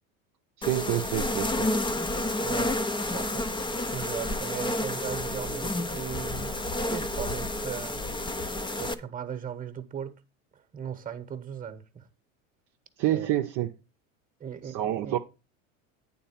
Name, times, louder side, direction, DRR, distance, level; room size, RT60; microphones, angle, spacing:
sound 1, 0.6-8.9, left 1 dB, 10° left, 0.6 m, -30 dB
voice 1, 0.6-1.7 13.0-13.7 14.6-15.2, right 13 dB, 50° right, 0.7 m, -28 dB
voice 2, 2.4-6.5 6.9-8.0 8.8-10.1 10.5-12.1 13.1-13.4 14.4-15.1, right 8 dB, 20° right, 1.1 m, -38 dB
9.0 x 4.0 x 5.7 m
hypercardioid pair, 100°, 40 cm